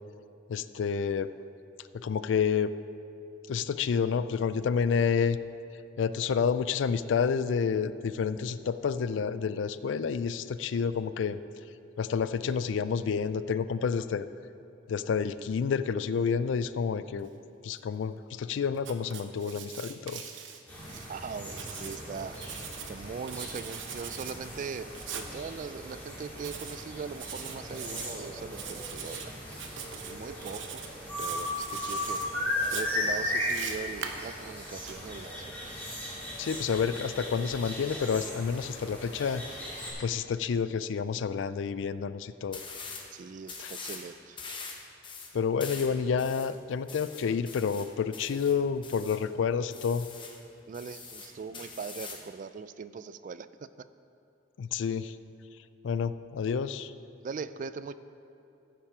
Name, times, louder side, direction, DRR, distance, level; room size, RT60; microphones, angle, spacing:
voice 1, 0.5-1.3 1.9-2.7 3.5-5.4 6.0-11.4 12.0-14.2 14.9-17.3 17.6-20.2 36.4-42.6 43.6-43.7 45.3-50.1 54.6-55.2 55.8-56.9, left 6 dB, 80° left, 13 dB, 0.4 m, -29 dB
Writing, 18.8-21.1 21.4-22.9 23.3-24.3 24.9-25.3 26.4-26.8 27.1-28.1 28.5-29.2 29.5-30.1 30.4-30.9 31.2-32.2 32.6-34.9, right 7 dB, 90° right, 0.8 m, -41 dB
sound 1, 20.7-39.9, left 1 dB, 10° left, 2.7 m, -37 dB
voice 2, 21.1-22.4 22.9-29.4 29.7-30.8 31.2-32.2 32.7-35.5 43.1-44.4 50.7-53.7 57.2-57.9, right 5 dB, 45° right, 14 dB, 0.3 m, -40 dB
sound 2, 42.5-43.1 43.4-44.1 44.4-49.2 49.7-50.4 50.7-52.3, left 4 dB, 25° left, 1.0 m, -43 dB
14.5 x 6.0 x 4.9 m, 2.8 s
head